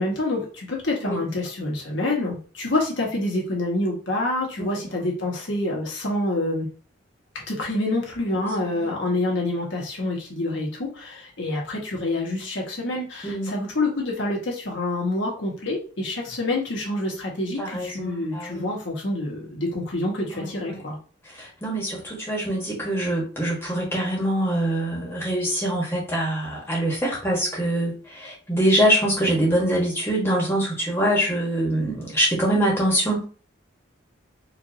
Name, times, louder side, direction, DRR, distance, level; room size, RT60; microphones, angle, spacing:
voice 1, 0.0-6.7 7.3-21.0, left 2 dB, 70° left, -1 dB, 1.3 m, -27 dB
voice 2, 4.6-5.1 8.7-8.9 13.2-13.5 17.6-18.6 20.3-20.8 21.4-33.3, right 1 dB, 10° left, -3 dB, 1.2 m, -24 dB
4.6 x 2.6 x 2.7 m, 0.39 s
head